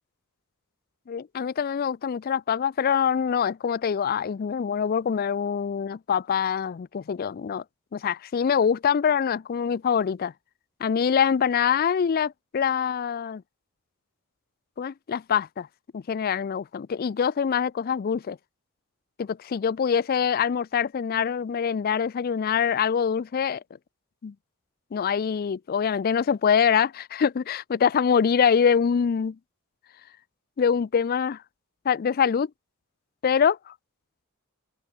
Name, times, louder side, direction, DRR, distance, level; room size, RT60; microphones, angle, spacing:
voice 1, 1.1-7.6 7.9-10.3 10.8-13.4 14.8-15.7 15.9-18.4 19.2-23.6 24.2-24.3 24.9-29.4 30.6-31.4 31.8-32.5 33.2-33.7, left 7 dB, 45° left, 0.3 m, -24 dB
head